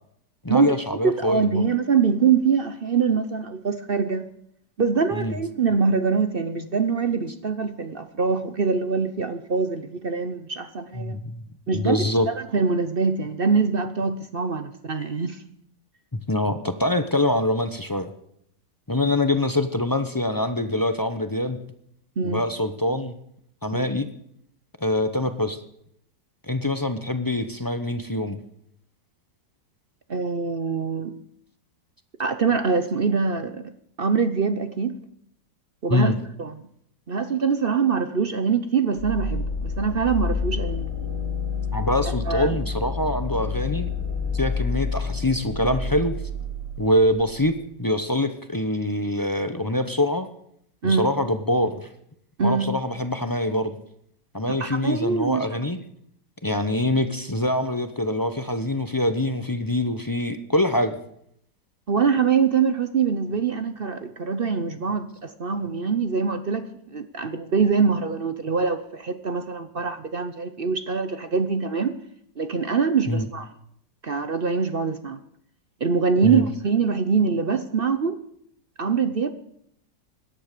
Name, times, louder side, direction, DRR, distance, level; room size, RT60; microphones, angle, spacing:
voice 1, 0.4-1.6 5.1-5.4 10.9-11.4 11.7-12.3 16.1-18.1 18.9-21.6 22.2-23.1 23.6-24.1 24.8-25.6 26.5-28.4 35.9-36.2 41.7-43.9 44.3-46.2 46.8-47.5 47.8-50.3 50.8-51.9 52.4-53.7 54.3-55.8 56.4-61.0 73.1-73.3 76.2-76.5, left 1 dB, 30° left, 9 dB, 0.4 m, -24 dB
voice 2, 1.0-4.2 4.8-11.2 11.7-15.4 22.2-22.4 23.7-23.9 30.1-31.2 32.2-33.6 34.0-35.0 35.8-36.1 36.4-36.6 37.1-40.9 42.2-42.6 50.8-51.1 52.4-52.7 54.5-55.6 61.9-72.0 72.4-73.5 74.0-75.2 75.8-78.2 78.8-79.3, right 5 dB, 45° right, 10 dB, 0.7 m, -24 dB
sound 1, 39.0-47.7, left 4 dB, 20° right, 6.4 m, -29 dB
18.0 x 11.5 x 6.8 m, 0.72 s
omnidirectional pair, 1.9 m